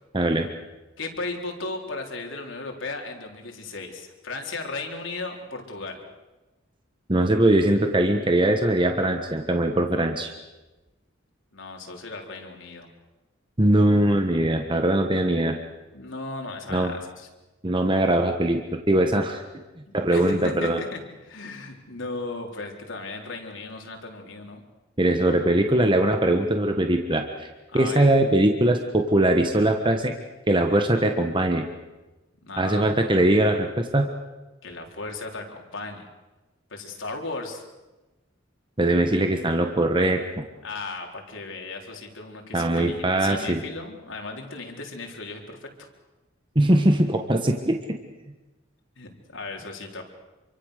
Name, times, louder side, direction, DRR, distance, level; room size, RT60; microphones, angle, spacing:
voice 1, 0.1-0.5 7.1-10.3 13.6-15.6 16.7-16.9 17.6-18.6 18.9-19.4 19.9-20.8 25.0-27.5 27.7-30.1 30.5-31.6 32.6-34.1 38.8-40.4 42.5-43.6 46.5-48.0, right 1 dB, 25° right, 4 dB, 1.5 m, -21 dB
voice 2, 1.0-6.0 11.5-12.9 15.9-17.3 19.9-24.6 27.7-28.1 32.4-32.9 34.6-36.0 36.7-37.6 40.6-45.9 49.0-50.0, left 3 dB, 75° left, 2 dB, 4.2 m, -36 dB
27.5 x 24.5 x 6.7 m, 1.1 s
head